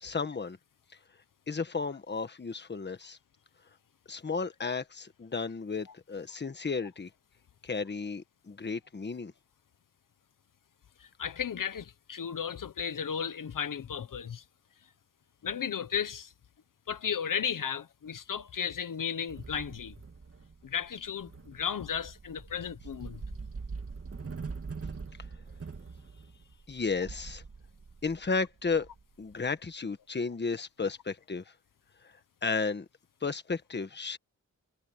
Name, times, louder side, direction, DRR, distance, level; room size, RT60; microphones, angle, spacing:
voice 1, 0.0-0.6 1.5-3.2 4.1-7.1 7.6-9.3 26.7-27.4 28.0-28.9 29.2-31.4 32.4-32.8 33.2-34.2, left 4 dB, 35° left, 1.3 m, -33 dB
voice 2, 11.0-14.4 15.4-16.3 16.9-19.9 20.6-23.2, left 7 dB, 75° left, 1.1 m, -34 dB
sound 1, 19.3-29.5, right 4 dB, 45° right, 2.3 m, -44 dB
wide cardioid pair, 170°, 33 cm